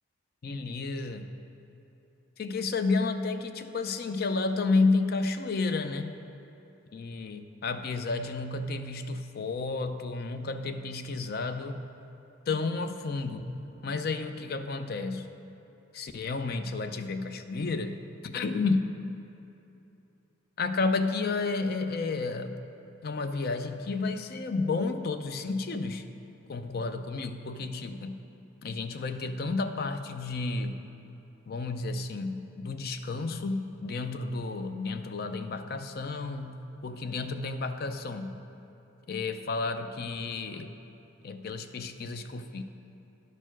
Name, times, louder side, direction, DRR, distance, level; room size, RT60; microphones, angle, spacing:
voice 1, 0.4-1.3 2.4-6.2 6.9-11.8 12.5-15.3 15.9-18.9 20.6-22.6 23.0-26.1 26.5-28.2 28.6-30.8 31.5-38.4 39.1-40.7 41.2-42.6, left 3 dB, 45° left, 9 dB, 0.4 m, -31 dB
11.0 x 4.5 x 5.9 m, 2.9 s
head